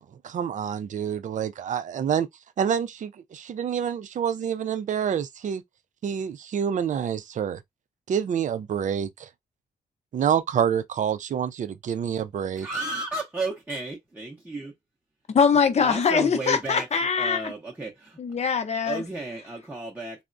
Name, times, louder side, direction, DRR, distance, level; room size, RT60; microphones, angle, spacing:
voice 1, 0.2-2.3 2.6-5.6 6.0-7.6 8.1-9.3 10.1-12.7, right 8 dB, 50° right, 0.4 m, -27 dB
voice 2, 12.5-14.7 15.8-18.2 18.8-20.2, right 2 dB, 10° right, 0.6 m, -33 dB
voice 3, 15.3-17.5 18.2-19.0, left 6 dB, 45° left, 0.6 m, -22 dB
3.5 x 2.0 x 2.5 m
wide cardioid pair, 130°, 16 cm